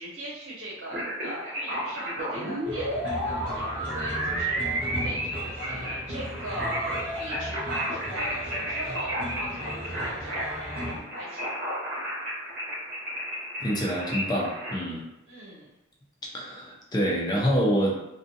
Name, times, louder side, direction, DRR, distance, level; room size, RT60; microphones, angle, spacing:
voice 1, 0.0-11.5 15.3-15.7, right 1 dB, 85° right, -6 dB, 1.1 m, -40 dB
sound 1, 0.9-14.8, right 1 dB, 50° right, 0.8 m, -32 dB
sound 2, 2.6-11.0, equal, 10° right, 0.9 m, -36 dB
voice 2, 13.6-15.1 16.3-18.0, equal, 20° left, -2 dB, 0.4 m, -26 dB
2.5 x 2.4 x 2.6 m, 0.93 s
head